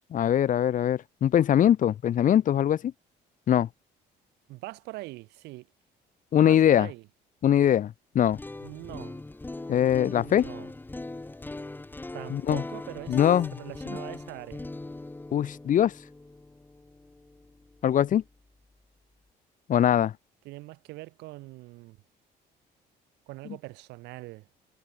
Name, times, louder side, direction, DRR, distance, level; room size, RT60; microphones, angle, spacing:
voice 1, 0.1-2.9 3.5-3.7 6.3-6.9 7.4-8.4 9.7-10.5 12.3-12.6 13.1-13.5 15.3-15.9 17.8-18.2 19.7-20.1, left 10 dB, 50° left, 1.2 m, -22 dB
voice 2, 4.5-5.7 6.4-7.1 8.6-9.2 10.1-10.7 12.1-13.2 13.6-14.6 20.4-22.0 23.3-24.5, right 20 dB, 90° right, 2.9 m, -42 dB
sound 1, 8.2-18.2, left 2 dB, 10° left, 1.9 m, -40 dB
cardioid pair, 110°, 17 cm